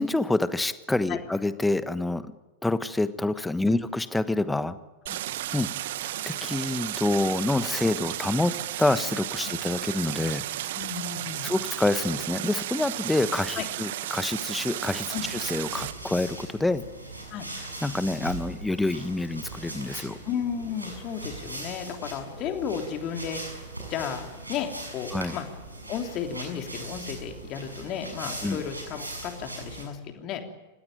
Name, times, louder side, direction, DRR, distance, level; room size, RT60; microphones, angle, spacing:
voice 1, 0.0-2.3 2.6-4.8 5.5-5.7 6.0-10.4 11.4-16.8 17.8-20.2 25.1-25.4 28.4-28.6, left 2 dB, 5° left, 14 dB, 1.2 m, -27 dB
Stream, 5.1-15.9, right 14 dB, 55° right, 0.9 m, -33 dB
voice 2, 10.7-11.5 13.5-13.7 15.1-15.3 17.3-17.5 20.2-24.2 24.5-25.4 25.9-30.4, left 8 dB, 35° left, 4 dB, 3.3 m, -33 dB
sound 1, 15.1-29.8, right 2 dB, 85° right, 6.6 m, -40 dB
29.0 x 16.5 x 9.1 m, 1.1 s
figure-of-eight pair, 90°, 0 cm